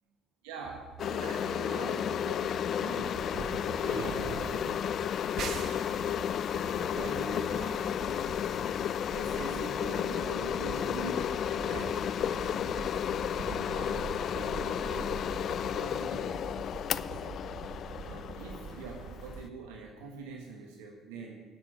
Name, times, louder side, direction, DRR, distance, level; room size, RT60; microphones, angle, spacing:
voice 1, 0.4-3.3 3.8-5.0 5.3-5.6 6.7-8.2 9.1-12.6 13.4-15.2 15.7-16.4 16.9-17.4 18.0-21.4, right 4 dB, 80° right, 1 dB, 1.3 m, -44 dB
sound 1, 0.6-19.5, right 6 dB, 65° right, 0.9 m, -43 dB
sound 2, 1.0-19.5, left 9 dB, 60° left, 0.3 m, -33 dB
9.9 x 6.9 x 8.7 m, 1.3 s
hypercardioid pair, 55°, 0 cm